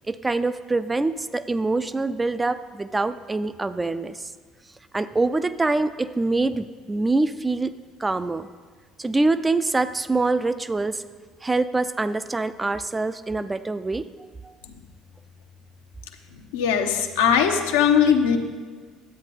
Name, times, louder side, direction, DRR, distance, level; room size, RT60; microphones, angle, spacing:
voice 1, 0.1-4.2 4.9-8.5 9.0-11.0 11.4-14.1 14.4-14.5, right 3 dB, 20° right, 12 dB, 0.4 m, -25 dB
voice 2, 16.3-18.4, left 7 dB, 80° left, 4 dB, 0.7 m, -20 dB
10.5 x 8.0 x 4.1 m, 1.6 s
hypercardioid pair, 60°, 0 cm